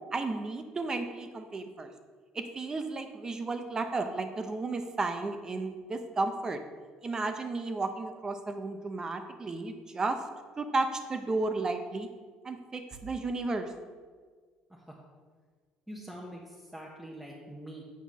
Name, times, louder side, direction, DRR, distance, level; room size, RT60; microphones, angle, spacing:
voice 1, 0.1-1.9 2.3-6.6 7.0-10.2 10.6-12.1 12.4-13.7, right 3 dB, 25° right, 7 dB, 0.8 m, -33 dB
voice 2, 15.9-17.8, right 1 dB, 5° right, -3 dB, 1.0 m, -44 dB
8.3 x 4.5 x 5.5 m, 1.5 s
cardioid pair, 115°, 3 cm